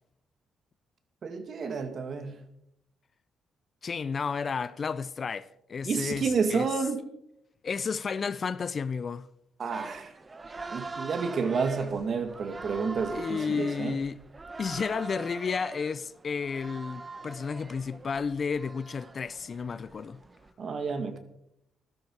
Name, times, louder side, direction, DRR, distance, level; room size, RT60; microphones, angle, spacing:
voice 1, 1.2-2.4 5.8-7.0 9.6-10.1 10.7-14.0 20.6-21.2, right 5 dB, 50° right, 2.1 m, -30 dB
voice 2, 3.8-6.7 7.6-9.3 13.1-14.2 14.6-20.2, left 5 dB, 45° left, 0.6 m, -32 dB
sound 1, 9.7-20.5, right 3 dB, 25° right, 1.0 m, -43 dB
14.5 x 13.0 x 4.8 m
cardioid pair, 90°, 0 cm